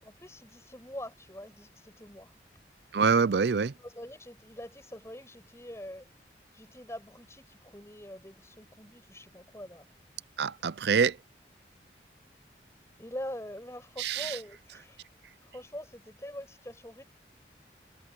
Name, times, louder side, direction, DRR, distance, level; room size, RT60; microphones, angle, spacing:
voice 1, 0.0-2.3 2.9-3.0 3.8-6.1 6.5-9.9 13.0-15.0 15.4-17.0, left 1 dB, 15° left, 6.5 m, -44 dB
voice 2, 2.9-3.7 10.4-11.2 14.0-14.4, right 5 dB, 75° right, 0.5 m, -25 dB
head